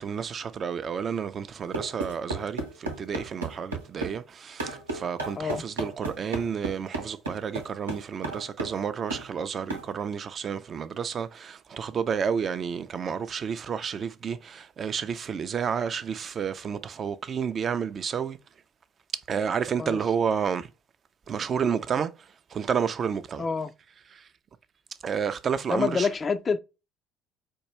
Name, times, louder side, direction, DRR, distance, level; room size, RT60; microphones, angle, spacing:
voice 1, 0.0-18.4 19.3-20.7 21.3-23.5 24.1-24.3 25.0-26.1, right 7 dB, 40° right, 0.4 m, -30 dB
sound 1, 1.7-4.2 4.6-8.8 9.1-9.3 9.7-9.9, right 2 dB, 85° right, 0.8 m, -34 dB
voice 2, 23.4-23.7 25.7-26.6, left 5 dB, 30° left, 0.4 m, -27 dB
4.4 x 2.3 x 3.1 m
figure-of-eight pair, 55°, 0 cm